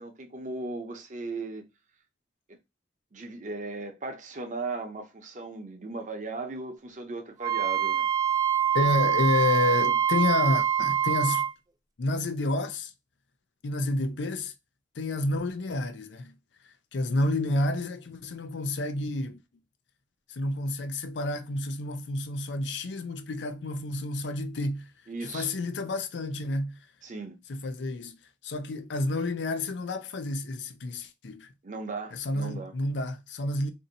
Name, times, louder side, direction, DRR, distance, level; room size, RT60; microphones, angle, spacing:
voice 1, 0.0-1.6 2.5-2.6 3.1-8.1 25.1-25.5 27.0-27.4 31.6-32.8, right 3 dB, 45° right, 0.7 m, -37 dB
Wind instrument woodwind instrument, 7.4-11.5, right 9 dB, 20° right, 0.3 m, -25 dB
voice 2, 8.7-11.5 12.0-12.9 13.6-14.5 15.0-16.3 16.9-19.4 20.3-24.9 25.3-26.8 27.5-28.2 28.4-31.5 32.1-33.7, left 2 dB, 85° left, 0.5 m, -29 dB
2.7 x 2.6 x 3.8 m
head